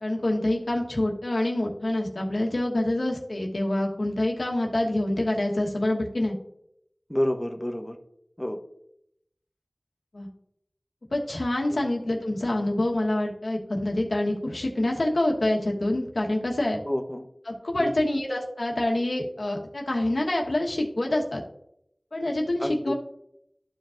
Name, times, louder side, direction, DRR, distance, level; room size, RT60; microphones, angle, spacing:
voice 1, 0.0-6.3 10.1-10.3 11.1-16.8 17.5-21.4 22.1-22.9, left 1 dB, 85° left, 0 dB, 1.3 m, -26 dB
voice 2, 7.1-8.0 8.4-8.6 11.7-11.8 16.8-17.3 17.8-17.9 22.6-22.9, equal, 10° left, 4 dB, 0.8 m, -29 dB
13.0 x 4.9 x 2.5 m, 0.76 s
wide cardioid pair, 40°, 0 cm